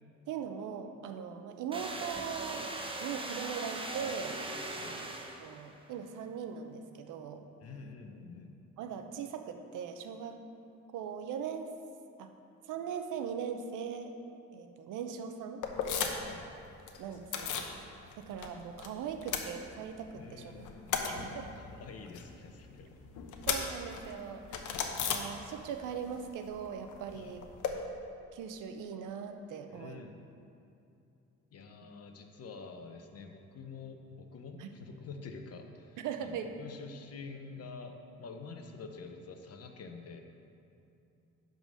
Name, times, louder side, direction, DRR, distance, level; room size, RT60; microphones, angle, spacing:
voice 1, 0.3-2.7 3.0-4.4 5.0-5.1 5.4-7.4 8.8-10.4 10.9-11.7 12.2-12.3 12.7-14.1 14.5-15.6 17.0-17.7 18.2-20.7 21.1-21.5 23.5-24.8 25.1-27.4 28.3-30.0 34.6-34.7 36.0-36.5, right 7 dB, 85° right, 7 dB, 0.7 m, -40 dB
sound 1, 1.7-5.7, right 2 dB, 15° right, 0.9 m, -40 dB
voice 2, 7.6-8.6 16.1-16.5 20.1-21.2 21.5-22.9 27.1-27.4 29.7-30.2 31.5-40.2, left 4 dB, 55° left, 5 dB, 0.9 m, -47 dB
sound 2, 15.6-16.4 16.6-17.7 18.1-18.9 19.1-20.1 20.5-25.8 26.1-27.7, left 7 dB, 85° left, 0.9 m, -36 dB
10.5 x 4.0 x 6.3 m, 2.7 s
cardioid pair, 90°, 30 cm